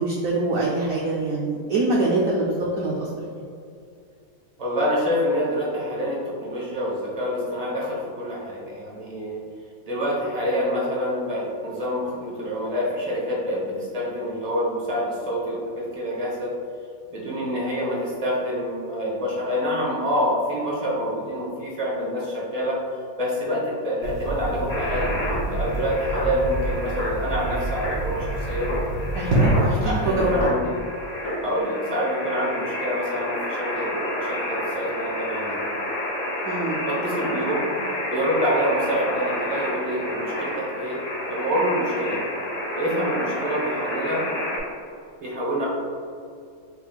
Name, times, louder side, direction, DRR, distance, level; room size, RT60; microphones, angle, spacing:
voice 1, 0.0-3.1 29.1-30.5 36.4-36.8, right 2 dB, 75° right, -4 dB, 0.7 m, -24 dB
voice 2, 4.6-9.4 9.9-16.6 17.1-22.8 23.2-28.7 29.8-30.7 31.4-33.9 34.2-35.6 36.8-37.7 38.1-42.2 42.8-44.3 45.2-45.7, equal, 30° right, -5 dB, 0.7 m, -27 dB
sound 1, 24.0-30.5, right 2 dB, 55° right, 1.4 m, -27 dB
sound 2, 24.7-44.6, left 1 dB, 80° left, 2.0 m, -30 dB
5.9 x 3.6 x 2.3 m, 2.4 s
omnidirectional pair, 2.1 m